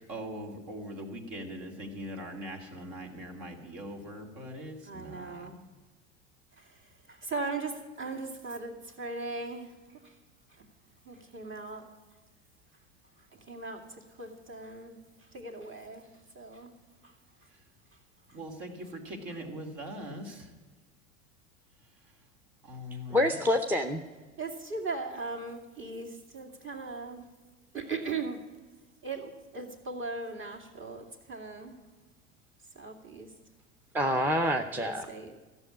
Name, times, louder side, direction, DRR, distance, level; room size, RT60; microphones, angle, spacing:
voice 1, 0.1-5.5 18.3-20.5 22.6-23.4, equal, 55° right, 3 dB, 2.8 m, -41 dB
voice 2, 4.8-5.6 6.6-10.1 10.5-10.6 11.0-11.9 13.3-16.7 17.0-17.1 18.3-18.4 19.3-19.4 24.4-27.3 27.7-28.4 29.0-31.8 32.7-33.3 34.7-35.5, right 3 dB, 30° right, 2 dB, 2.4 m, -39 dB
voice 3, 23.1-24.0 33.9-35.1, left 1 dB, 5° right, 6 dB, 0.7 m, -27 dB
13.5 x 7.1 x 9.8 m, 1.3 s
hypercardioid pair, 90°, 38 cm